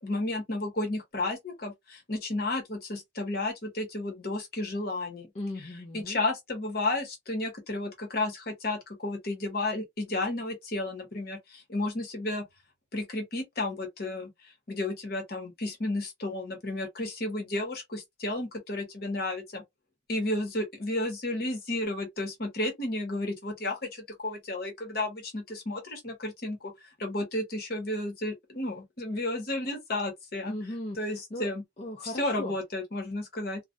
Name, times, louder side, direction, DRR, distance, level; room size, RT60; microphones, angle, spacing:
voice 1, 0.0-5.3 5.9-12.4 12.9-19.6 20.1-26.7 27.0-30.5 31.0-31.6 32.0-33.6, left 2 dB, 55° left, 1.0 m, -32 dB
voice 2, 5.3-6.2 30.5-31.5 31.8-32.6, left 1 dB, 35° left, 0.5 m, -37 dB
2.3 x 2.1 x 2.5 m
head